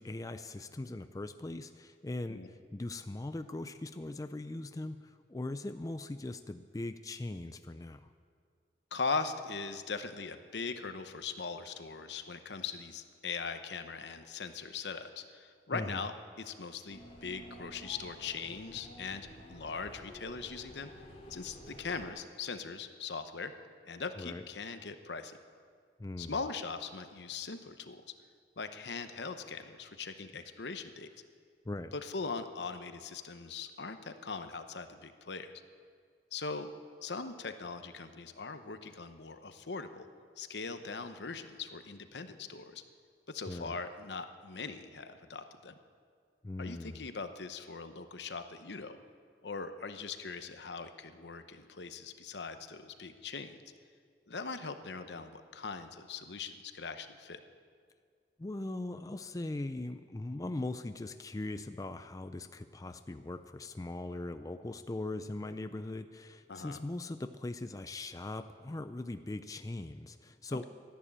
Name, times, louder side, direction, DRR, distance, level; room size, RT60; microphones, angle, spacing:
voice 1, 0.0-8.1 15.7-16.0 24.2-24.4 26.0-26.4 31.7-31.9 43.5-43.8 46.4-47.1 58.4-70.6, left 2 dB, 20° left, 9 dB, 0.4 m, -40 dB
voice 2, 8.9-20.9 21.3-23.5 23.9-25.4 26.2-28.1 28.6-31.1 31.9-35.5 36.3-36.7 37.0-40.1 40.4-42.8 43.3-45.8 46.6-49.0 49.4-53.5 54.3-57.4 66.5-66.8 70.5-70.7, left 4 dB, 75° left, 9 dB, 0.9 m, -40 dB
sound 1, 16.9-22.1, equal, 35° left, 2.5 m, -51 dB
13.0 x 11.0 x 8.7 m, 2.1 s
head